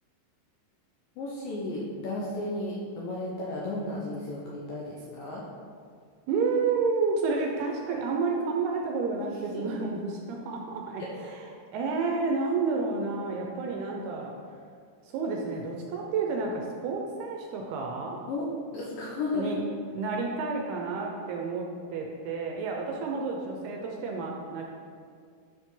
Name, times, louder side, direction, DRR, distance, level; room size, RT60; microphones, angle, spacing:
voice 1, 1.2-5.4 9.3-9.8 11.0-11.1 18.3-18.5 18.7-19.5, left 2 dB, 75° left, -4 dB, 2.2 m, -34 dB
voice 2, 6.3-11.0 11.7-14.3 15.1-18.2 19.3-19.6 19.9-24.6, right 4 dB, 75° right, 0 dB, 2.5 m, -30 dB
12.0 x 6.1 x 3.8 m, 2.1 s
omnidirectional pair, 5.2 m